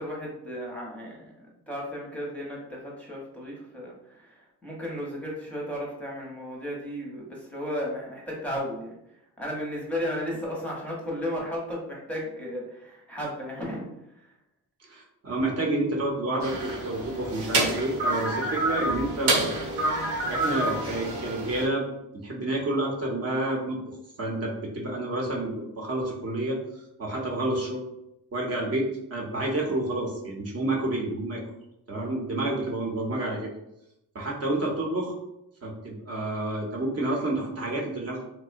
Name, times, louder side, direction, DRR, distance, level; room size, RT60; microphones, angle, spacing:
voice 1, 0.0-1.3 1.7-13.8, equal, 5° left, -4 dB, 0.7 m, -34 dB
voice 2, 14.9-19.5 20.3-21.9 22.1-27.8 28.3-28.9 29.1-31.4 31.9-33.5 34.1-35.1 35.6-38.2, right 2 dB, 40° right, -1 dB, 0.7 m, -29 dB
sound 1, 16.4-21.7, right 2 dB, 75° right, 0.9 m, -28 dB
2.7 x 2.1 x 2.4 m, 0.83 s
cardioid pair, 70°, 39 cm